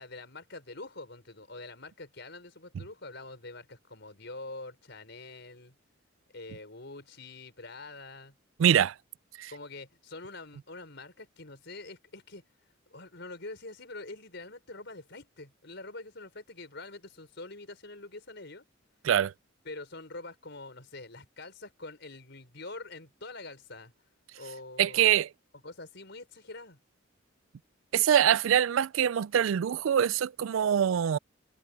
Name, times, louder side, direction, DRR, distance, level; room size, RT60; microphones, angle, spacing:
voice 1, 0.0-5.7 6.3-8.3 9.5-12.4 12.9-18.6 19.6-23.9 24.3-25.1 25.6-26.8, left 2 dB, 60° left, 5.7 m, -45 dB
voice 2, 8.6-8.9 9.4-9.5 19.0-19.3 24.8-25.3 27.9-31.2, right 9 dB, 80° right, 0.4 m, -24 dB
head